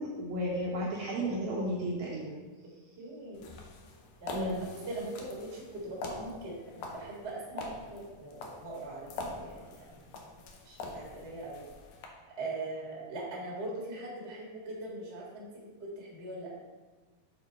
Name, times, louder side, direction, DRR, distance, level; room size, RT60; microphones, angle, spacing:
voice 1, 0.0-2.3 4.3-4.6, equal, 70° right, -4 dB, 1.9 m, -33 dB
voice 2, 3.0-3.6 4.2-4.5 4.9-9.1 9.4-10.0 10.6-11.6 12.4-15.5 15.8-16.6, right 2 dB, 35° right, -5 dB, 1.0 m, -41 dB
sound 1, 3.3-12.1, left 2 dB, 75° left, 1.9 m, -44 dB
6.7 x 3.8 x 4.5 m, 1.2 s
omnidirectional pair, 4.1 m